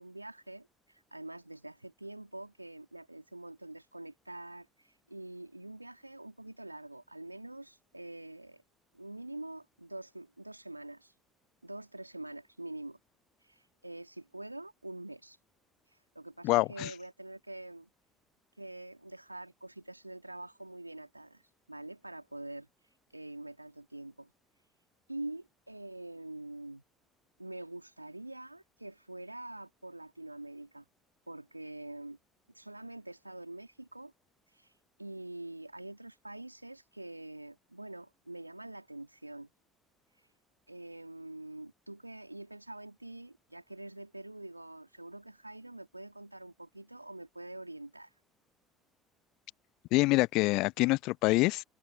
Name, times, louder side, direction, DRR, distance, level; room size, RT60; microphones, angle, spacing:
voice 1, 0.0-8.6 8.9-11.1 11.6-13.0 13.4-15.4 15.9-17.9 18.6-21.4 21.7-22.7 23.1-24.3 25.1-26.8 27.4-30.9 31.3-32.2 32.5-34.1 34.5-34.7 35.0-39.5 40.7-48.1, right 2 dB, 90° right, 3.9 m, -45 dB
voice 2, 16.4-16.9 49.9-51.6, left 22 dB, 55° left, 0.6 m, -26 dB
figure-of-eight pair, 60°, 0 cm